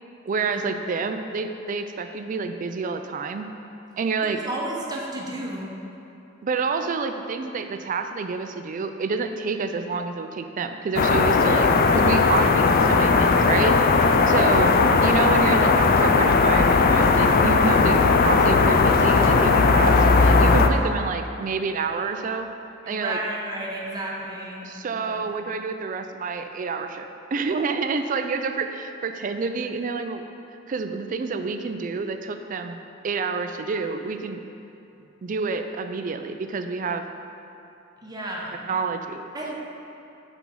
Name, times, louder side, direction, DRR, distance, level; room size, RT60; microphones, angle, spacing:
voice 1, 0.3-3.5 4.0-4.4 6.4-13.8 14.3-14.7 15.0-22.5 22.9-23.2 24.6-30.2 30.7-32.8 33.0-34.4 35.2-37.0 38.6-39.3, right 4 dB, 45° right, 7 dB, 0.4 m, -28 dB
voice 2, 4.2-5.7 13.7-14.7 22.8-24.6 25.0-25.2 38.0-38.6 39.3-39.5, right 1 dB, 20° right, -3 dB, 0.9 m, -33 dB
sound 1, 11.0-20.7, left 4 dB, 50° left, 0.4 m, -18 dB
6.1 x 4.5 x 5.4 m, 2.8 s
head